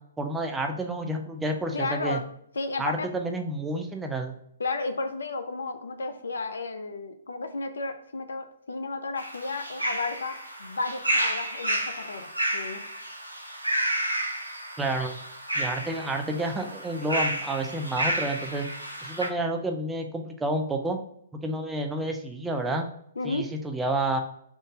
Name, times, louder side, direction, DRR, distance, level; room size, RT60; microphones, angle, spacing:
voice 1, 0.2-2.2 2.8-4.4 14.8-15.2 15.5-18.7 19.0-21.0 21.4-22.9 23.2-24.2, right 2 dB, 10° right, 3 dB, 0.4 m, -29 dB
voice 2, 1.7-2.2 2.5-3.1 4.6-12.8 23.2-23.5, left 3 dB, 70° left, 9 dB, 0.5 m, -33 dB
sound 1, 9.2-19.3, right 1 dB, 90° right, 0.5 m, -31 dB
3.6 x 2.6 x 3.8 m, 0.71 s
figure-of-eight pair, 120°, 0 cm